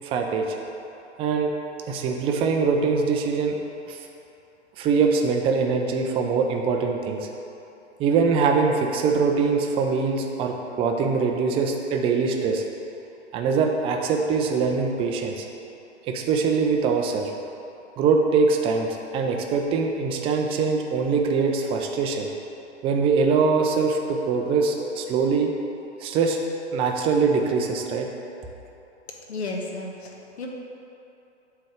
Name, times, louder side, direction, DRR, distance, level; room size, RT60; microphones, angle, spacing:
voice 1, 0.0-0.6 1.2-1.5 1.9-3.6 3.9-4.0 4.8-7.2 8.0-12.6 13.3-15.5 16.1-17.3 18.0-18.9 19.1-22.3 22.8-25.5 26.0-26.4 26.7-28.1, right 5 dB, 15° right, 2 dB, 0.5 m, -23 dB
voice 2, 29.3-30.5, left 2 dB, 65° left, 0 dB, 1.3 m, -33 dB
7.6 x 3.5 x 6.1 m, 2.9 s
figure-of-eight pair, 110°, 35 cm